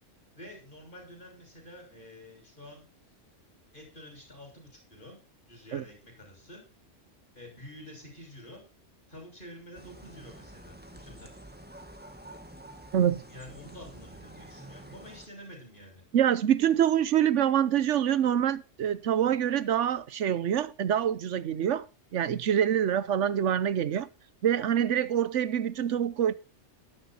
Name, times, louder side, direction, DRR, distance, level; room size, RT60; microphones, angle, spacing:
voice 1, 0.3-2.8 3.7-5.2 5.4-6.6 7.3-8.6 9.1-11.3 13.3-16.0, left 1 dB, 45° left, 6.6 m, -48 dB
sound 1, 9.7-15.3, right 1 dB, 10° right, 1.6 m, -48 dB
voice 2, 16.1-21.9 22.1-24.1 24.4-26.3, right 9 dB, 80° right, 1.1 m, -25 dB
12.5 x 11.0 x 4.3 m
omnidirectional pair, 1.2 m